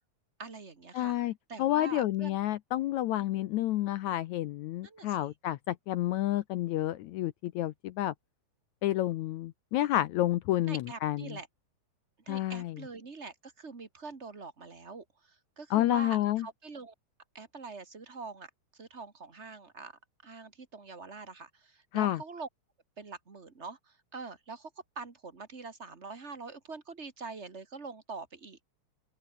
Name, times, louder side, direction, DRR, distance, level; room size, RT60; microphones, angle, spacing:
voice 1, 0.4-2.4 3.2-3.4 4.8-5.3 10.6-11.5 12.2-16.9 17.3-22.5 23.0-24.7 24.9-28.6, right 4 dB, 30° right, 1.4 m, -44 dB
voice 2, 0.9-1.3 1.6-8.1 8.8-11.4 12.3-12.8 15.7-16.5 21.9-22.2, left 14 dB, 80° left, 1.7 m, -30 dB
open air
omnidirectional pair, 4.0 m